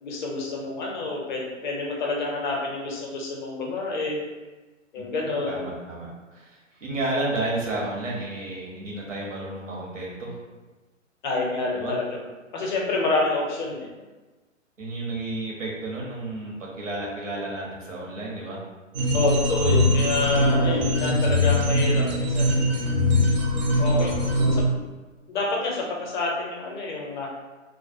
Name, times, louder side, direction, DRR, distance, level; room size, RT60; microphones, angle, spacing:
voice 1, 0.0-4.2 4.9-5.7 11.2-12.1 12.5-13.9 19.1-22.7 23.8-24.2 24.5-24.7 25.3-27.3, left 3 dB, 40° left, -2 dB, 0.5 m, -28 dB
voice 2, 5.5-10.4 11.7-12.0 14.8-18.6, right 2 dB, 75° right, -3 dB, 0.9 m, -32 dB
sound 1, 18.9-24.6, left 1 dB, 35° right, 0.5 m, -22 dB
2.3 x 2.0 x 2.6 m, 1.2 s
figure-of-eight pair, 125°, 39 cm